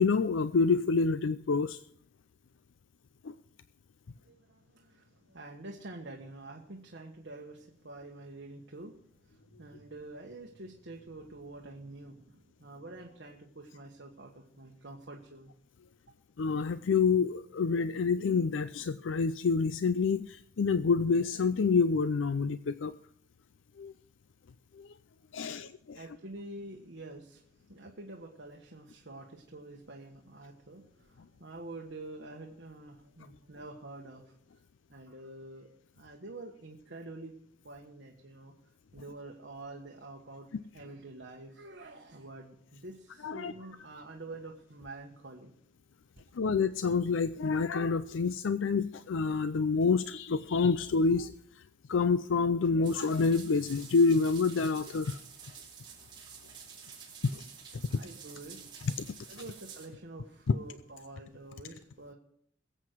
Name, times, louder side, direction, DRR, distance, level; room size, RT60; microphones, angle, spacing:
voice 1, 0.0-1.8 3.2-3.3 16.4-22.9 23.8-23.9 24.8-24.9 25.3-26.0 43.2-43.5 46.3-51.6 51.9-55.2 57.3-57.4 57.7-58.0 60.5-60.6, left 4 dB, 90° left, 13 dB, 0.5 m, -28 dB
voice 2, 4.2-15.5 25.4-25.6 25.9-27.4 27.7-34.3 34.9-35.7 35.9-37.4 37.6-38.5 38.9-45.5 57.8-58.7 59.3-62.1, right 2 dB, 65° right, 0 dB, 1.5 m, -47 dB
sound 1, 52.8-59.8, right 6 dB, 25° right, 3.9 m, -49 dB
21.5 x 8.0 x 4.6 m, 0.66 s
head